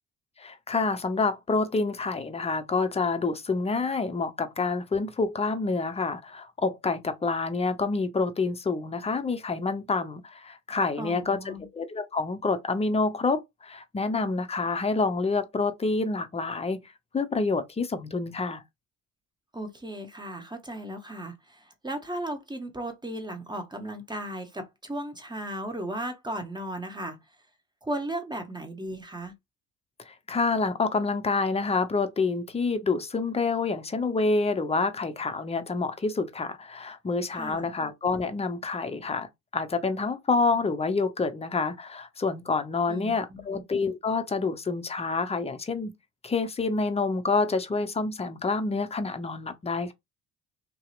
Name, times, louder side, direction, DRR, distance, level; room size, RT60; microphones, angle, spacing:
voice 1, 0.4-16.8 17.1-18.6 30.1-39.3 39.5-45.9 46.2-49.9, left 4 dB, 15° left, 0.5 m, -28 dB
voice 2, 11.0-11.7 19.5-27.2 27.8-29.3 37.3-37.7 42.9-43.6, right 1 dB, 10° right, 0.9 m, -36 dB
2.7 x 2.0 x 2.3 m
hypercardioid pair, 60°, 39 cm